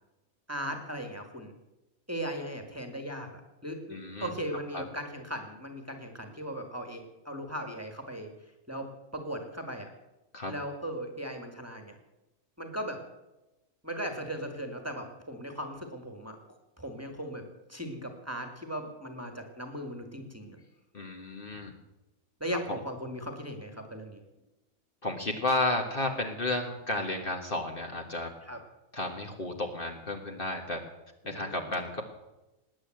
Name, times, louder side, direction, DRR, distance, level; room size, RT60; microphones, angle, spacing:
voice 1, 0.5-1.5 2.1-8.3 8.7-8.9 9.1-9.9 10.5-12.0 12.6-13.0 13.8-16.4 16.8-20.6 22.4-24.2 28.5-28.6 31.2-31.7, equal, 10° right, 4 dB, 1.8 m, -38 dB
voice 2, 3.9-4.3 4.7-4.8 10.3-10.5 20.9-21.7 22.5-22.8 25.0-28.3 28.9-30.8 31.2-32.0, left 2 dB, 40° left, 3 dB, 1.7 m, -32 dB
19.5 x 8.8 x 7.7 m, 1.0 s
omnidirectional pair, 1.5 m